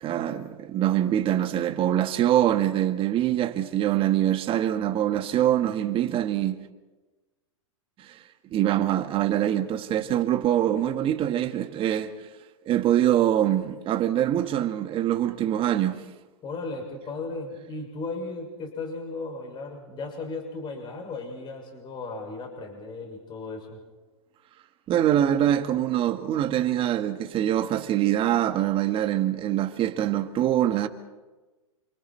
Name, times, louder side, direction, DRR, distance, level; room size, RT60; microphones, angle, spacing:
voice 1, 0.0-6.6 8.0-8.2 8.5-12.3 12.6-16.0 24.9-30.9, right 11 dB, 30° right, 1.6 m, -24 dB
voice 2, 16.4-23.8, left 3 dB, 25° left, 6.4 m, -36 dB
29.0 x 27.0 x 4.5 m
hypercardioid pair, 125°, 18 cm